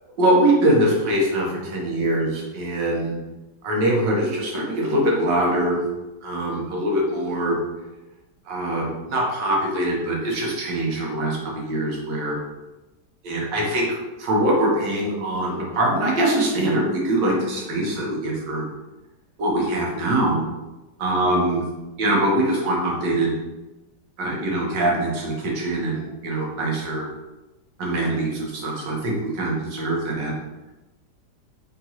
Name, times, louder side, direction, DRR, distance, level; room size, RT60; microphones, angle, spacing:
voice 1, 0.2-3.1 3.6-5.8 6.2-7.6 8.5-12.4 13.2-13.9 14.2-18.6 19.4-20.4 21.0-21.6 22.0-23.3 24.2-27.1 27.8-30.3, right 1 dB, 90° right, -2 dB, 1.8 m, -23 dB
4.4 x 4.0 x 3.0 m, 1.1 s
omnidirectional pair, 1.9 m